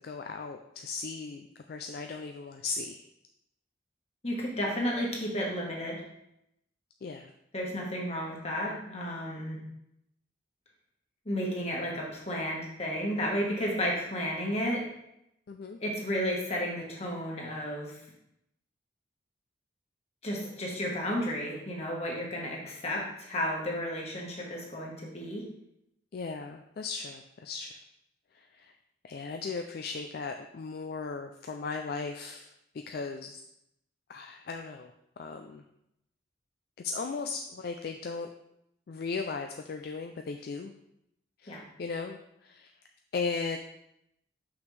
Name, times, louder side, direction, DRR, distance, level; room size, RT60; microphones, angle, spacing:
voice 1, 0.0-3.0 7.0-7.3 15.5-15.8 26.1-27.7 28.5-28.7 29.0-32.5 32.9-33.4 34.1-34.9 35.2-35.6 36.8-38.3 38.9-40.7 41.4-42.7 43.1-43.6, left 4 dB, 55° left, 4 dB, 0.3 m, -37 dB
voice 2, 4.2-6.0 7.5-9.6 11.2-14.8 15.8-18.0 20.2-25.5 41.5-41.6, equal, 35° left, -2 dB, 1.4 m, -32 dB
6.1 x 5.8 x 3.3 m, 0.81 s
head